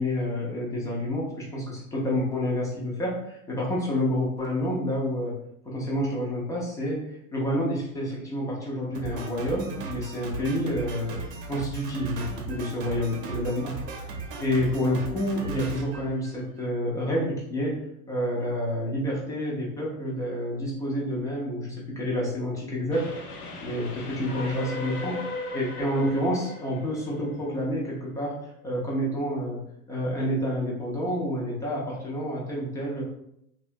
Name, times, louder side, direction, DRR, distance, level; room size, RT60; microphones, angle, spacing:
voice 1, 0.0-5.3 5.7-13.8 14.4-25.2 25.5-28.4 28.6-29.6 29.9-33.0, equal, 10° left, -4 dB, 0.3 m, -29 dB
Drum kit, 8.9-16.7, right 4 dB, 60° right, 0.7 m, -37 dB
Train, 22.9-28.2, left 2 dB, 90° left, 0.7 m, -38 dB
2.6 x 2.2 x 2.5 m, 0.76 s
hypercardioid pair, 105°, 43 cm